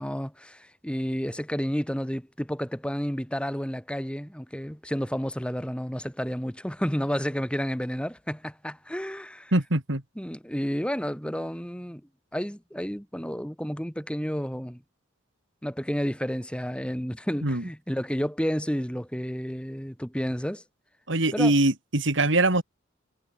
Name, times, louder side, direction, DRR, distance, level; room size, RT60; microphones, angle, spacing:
voice 1, 0.0-9.5 10.2-12.0 12.3-14.8 15.6-20.6 21.3-21.5, equal, 5° left, 3.8 m, -31 dB
voice 2, 9.5-10.0 17.4-17.6 21.1-22.6, right 2 dB, 65° right, 3.0 m, -23 dB
head